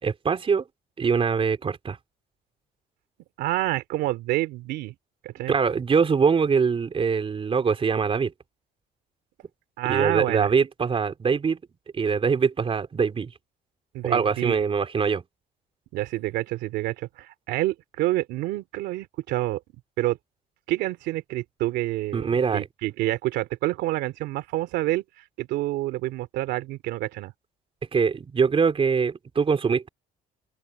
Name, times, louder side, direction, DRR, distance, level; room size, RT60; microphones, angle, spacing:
voice 1, 0.0-0.6 1.0-2.0 5.5-8.3 9.9-11.6 11.9-13.3 14.0-15.2 22.1-22.7 27.9-29.9, right 5 dB, 35° right, 3.5 m, -23 dB
voice 2, 3.4-4.9 5.2-5.6 9.8-10.5 13.9-14.7 15.9-19.6 20.0-20.2 20.7-27.3, right 16 dB, 90° right, 2.6 m, -28 dB
open air
cardioid pair, 110°, 17 cm